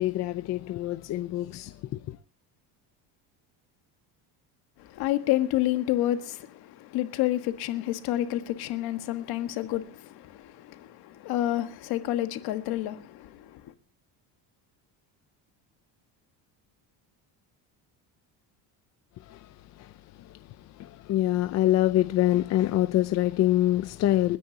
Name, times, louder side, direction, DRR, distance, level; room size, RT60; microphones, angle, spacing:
voice 1, 0.0-2.2 19.2-19.9 20.2-24.4, left 14 dB, 40° left, 0.6 m, -26 dB
voice 2, 4.8-13.7, left 14 dB, 65° left, 1.5 m, -29 dB
30.0 x 10.0 x 2.8 m
cardioid pair, 175°, 40 cm